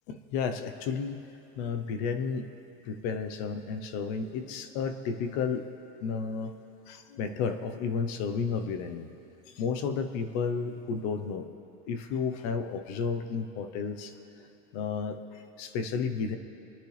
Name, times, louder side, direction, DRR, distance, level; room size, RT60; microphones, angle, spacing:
voice 1, 0.1-1.2 1.6-2.5 2.8-5.7 6.0-6.5 6.9-9.1 9.5-11.5 11.9-14.1 14.7-16.4, left 5 dB, 35° left, 9 dB, 0.7 m, -32 dB
28.0 x 10.5 x 3.3 m, 2.9 s
supercardioid pair, 165°, 34 cm